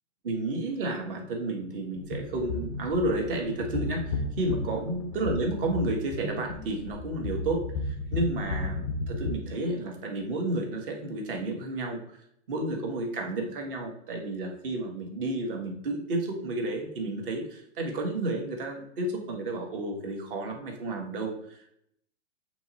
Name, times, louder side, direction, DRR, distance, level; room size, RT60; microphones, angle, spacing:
voice 1, 0.2-12.0 12.5-21.7, right 2 dB, 50° right, 2 dB, 1.5 m, -31 dB
sound 1, 1.9-9.3, left 2 dB, 20° left, 0.4 m, -34 dB
7.8 x 3.0 x 4.2 m, 0.70 s
hypercardioid pair, 165°, 35 cm